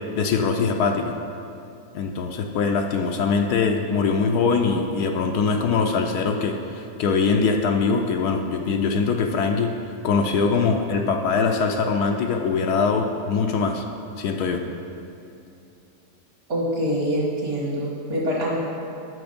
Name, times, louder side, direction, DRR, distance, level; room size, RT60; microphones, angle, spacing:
voice 1, 0.2-1.1 1.9-9.7 10.0-13.8 14.2-14.6, left 5 dB, 70° left, 3 dB, 1.1 m, -22 dB
voice 2, 16.5-18.5, equal, 60° right, -6 dB, 2.0 m, -25 dB
9.5 x 6.1 x 5.1 m, 2.7 s
omnidirectional pair, 1.8 m